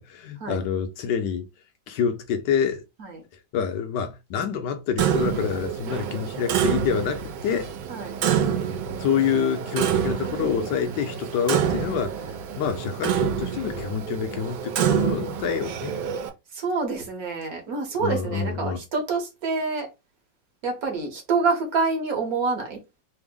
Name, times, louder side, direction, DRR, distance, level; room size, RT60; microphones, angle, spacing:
voice 1, 0.0-1.5 1.9-2.8 3.3-7.7 9.0-12.2 12.6-16.0 18.0-18.8, left 7 dB, 75° left, 1.2 m, -27 dB
Clock, 5.0-16.3, right 8 dB, 85° right, 1.3 m, -27 dB
voice 2, 7.9-8.2 16.5-19.9 20.6-22.8, right 4 dB, 60° right, 1.3 m, -27 dB
3.4 x 2.0 x 3.5 m
omnidirectional pair, 1.9 m